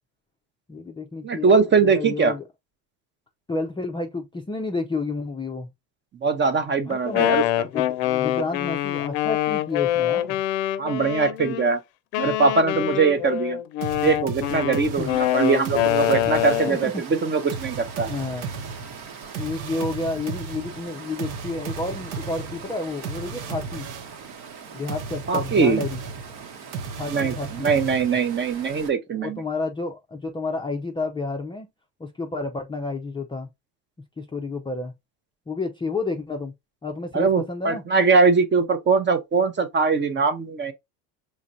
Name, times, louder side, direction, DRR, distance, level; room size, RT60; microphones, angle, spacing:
voice 1, 0.7-2.4 3.5-5.7 6.9-7.4 7.7-10.4 15.0-15.1 16.7-17.0 18.0-18.5 19.4-23.9 24.7-26.0 27.0-27.7 29.2-31.7 32.0-33.5 34.2-34.9 35.5-36.5 36.8-37.8, left 3 dB, 10° left, 0.4 m, -30 dB
voice 2, 1.2-2.3 6.2-7.7 10.8-11.8 12.2-13.6 14.0-18.1 25.3-25.8 27.1-29.4 37.1-40.7, right 4 dB, 25° right, 0.7 m, -21 dB
Wind instrument woodwind instrument, 6.9-11.6 12.1-16.8, left 14 dB, 70° left, 0.6 m, -25 dB
sound 1, 13.8-16.9 17.5-24.2 24.9-28.4, right 5 dB, 75° right, 0.9 m, -35 dB
Water, 14.9-28.9, right 6 dB, 60° right, 1.2 m, -41 dB
4.8 x 3.2 x 2.5 m
supercardioid pair, 100°, 44 cm